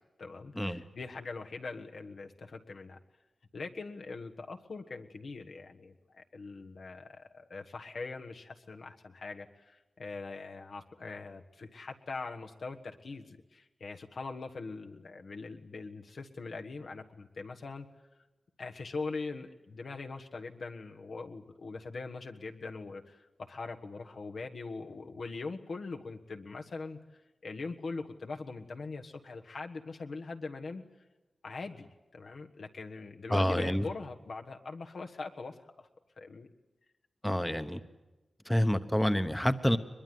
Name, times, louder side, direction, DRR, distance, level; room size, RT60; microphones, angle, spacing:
voice 1, 0.2-3.0 3.5-17.9 18.6-27.0 27.4-30.8 31.4-35.9 36.2-36.5, left 3 dB, 75° left, 4 dB, 1.4 m, -42 dB
voice 2, 33.3-33.9 37.2-37.8 38.5-39.8, equal, 5° left, 10 dB, 1.0 m, -28 dB
22.5 x 21.5 x 9.4 m, 1.1 s
wide cardioid pair, 70°, 0 cm